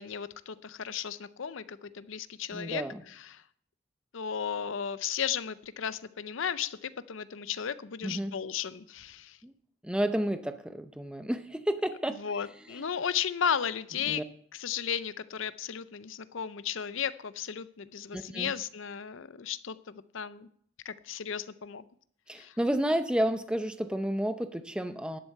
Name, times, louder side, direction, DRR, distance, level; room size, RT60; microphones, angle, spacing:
voice 1, 0.0-3.4 4.1-9.4 12.2-14.2 14.5-20.5 20.8-21.8 22.3-22.6, left 8 dB, 60° left, 15 dB, 0.5 m, -35 dB
voice 2, 2.5-3.0 8.0-8.3 9.4-9.5 9.8-12.2 12.7-12.8 14.1-14.2 18.1-18.5 22.3-25.2, right 1 dB, 5° right, 10 dB, 0.6 m, -31 dB
12.0 x 7.9 x 6.6 m, 0.64 s
head